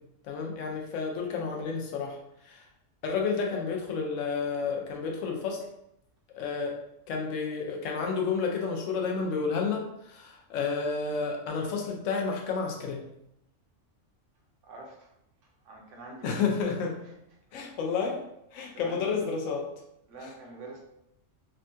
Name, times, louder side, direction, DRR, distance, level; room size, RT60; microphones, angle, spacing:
voice 1, 0.2-2.2 2.4-2.6 3.0-5.6 6.4-6.8 7.1-13.0 16.2-17.0 17.5-18.2 18.5-19.7 20.2-20.3, left 5 dB, 75° left, 1 dB, 0.9 m, -31 dB
voice 2, 14.7-15.1 15.6-16.5 17.0-17.2 18.7-19.3 20.1-20.8, right 2 dB, 75° right, -1 dB, 1.0 m, -45 dB
3.5 x 2.2 x 2.6 m, 0.80 s
omnidirectional pair, 1.3 m